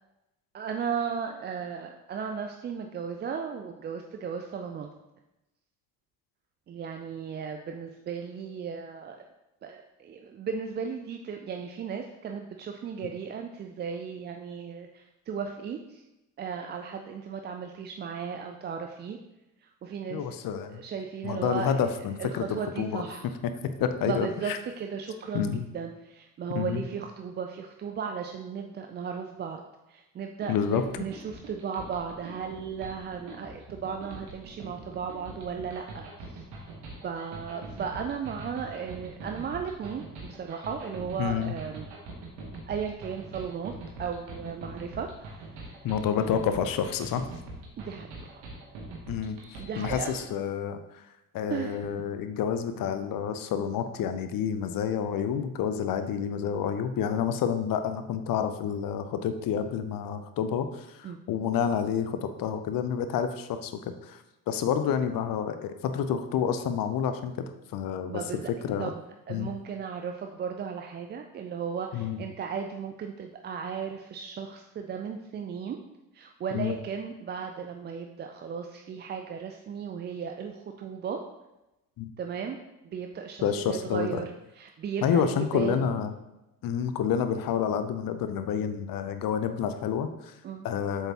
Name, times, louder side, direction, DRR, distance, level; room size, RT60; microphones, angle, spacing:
voice 1, 0.5-4.9 6.7-9.2 9.6-16.0 16.4-19.2 19.6-20.4 20.7-23.3 24.1-29.6 29.9-36.4 37.0-41.9 42.7-45.9 47.8-48.5 49.6-50.3 51.5-51.9 61.0-61.2 68.1-68.5 68.8-69.0 69.3-75.8 76.1-81.2 82.2-82.6 82.8-85.9 90.4-90.7, right 6 dB, 25° right, 4 dB, 0.3 m, -36 dB
voice 2, 20.1-20.8 21.2-22.4 22.8-23.0 23.6-24.6 25.3-25.6 26.5-26.8 30.5-30.8 41.2-41.5 45.8-47.2 49.1-51.0 51.3-63.7 64.0-64.2 64.5-67.5 67.7-68.2 68.6-68.9 69.3-69.5 71.9-72.2 76.5-76.8 82.0-82.1 83.4-84.2 85.0-86.1 86.6-90.3 90.6-91.1, left 8 dB, 45° left, 9 dB, 0.7 m, -29 dB
sound 1, 30.4-50.2, right 2 dB, 60° right, 1.5 m, -43 dB
7.6 x 4.6 x 2.9 m, 0.95 s
figure-of-eight pair, 40°, 50 cm